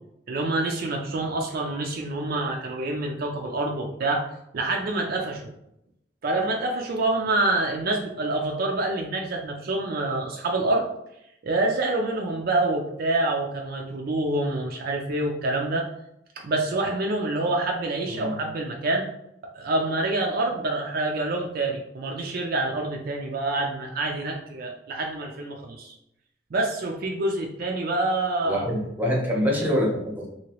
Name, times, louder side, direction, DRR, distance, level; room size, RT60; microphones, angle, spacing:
voice 1, 0.3-5.5 6.2-10.9 11.4-15.9 16.4-19.1 19.5-25.9 26.5-28.7, right 2 dB, 55° right, 1 dB, 0.4 m, -27 dB
voice 2, 28.4-30.3, equal, 10° right, -3 dB, 0.8 m, -25 dB
2.9 x 2.7 x 2.9 m, 0.79 s
head